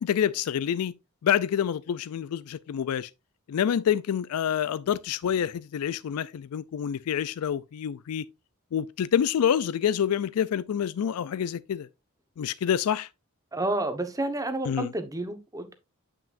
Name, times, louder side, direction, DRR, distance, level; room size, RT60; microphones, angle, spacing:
voice 1, 0.0-0.9 1.2-3.1 3.5-8.3 8.7-11.9 12.4-13.1 14.7-14.9, left 9 dB, 80° left, 0.3 m, -27 dB
voice 2, 13.5-15.7, right 2 dB, 15° right, 1.0 m, -30 dB
9.0 x 5.9 x 2.5 m
head